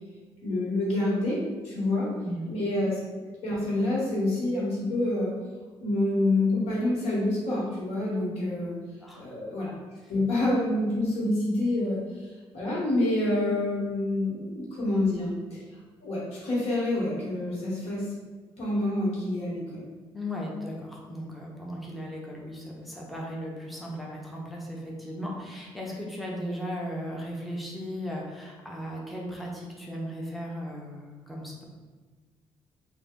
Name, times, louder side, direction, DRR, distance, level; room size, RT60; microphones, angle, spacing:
voice 1, 0.4-1.4 1.6-2.1 2.5-3.0 3.4-5.3 5.8-8.7 9.2-9.7 10.1-15.6 16.0-18.0 18.6-19.9, left 1 dB, 80° left, -5 dB, 1.4 m, -27 dB
voice 2, 9.0-9.3 10.0-10.1 20.1-31.6, equal, ahead, -3 dB, 0.7 m, -36 dB
3.2 x 2.6 x 3.7 m, 1.4 s
cardioid pair, 105°, 10 cm